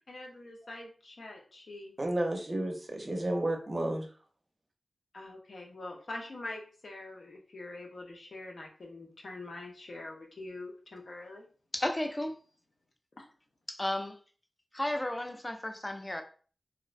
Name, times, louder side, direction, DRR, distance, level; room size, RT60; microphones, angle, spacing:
voice 1, 0.0-1.9 5.1-11.4, left 2 dB, 80° left, 0 dB, 0.6 m, -44 dB
voice 2, 2.0-4.1, right 1 dB, 40° right, 3 dB, 0.5 m, -31 dB
voice 3, 11.7-12.3 13.7-14.1 14.7-16.2, left 1 dB, 20° left, 5 dB, 0.4 m, -33 dB
2.5 x 2.1 x 2.4 m, 0.41 s
wide cardioid pair, 65°, 0 cm